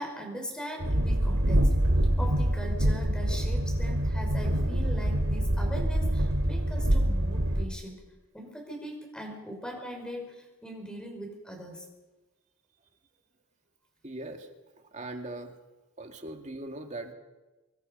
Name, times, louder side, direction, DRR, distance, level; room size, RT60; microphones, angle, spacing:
voice 1, 0.0-1.6 2.2-8.0 8.3-11.9, equal, 5° left, 1 dB, 5.5 m, -40 dB
Train, 0.8-7.7, right 1 dB, 85° right, 2.5 m, -25 dB
voice 2, 14.0-14.5 14.7-15.5 16.0-17.1, right 2 dB, 35° right, 4 dB, 2.3 m, -40 dB
26.0 x 22.0 x 5.5 m, 1.1 s
head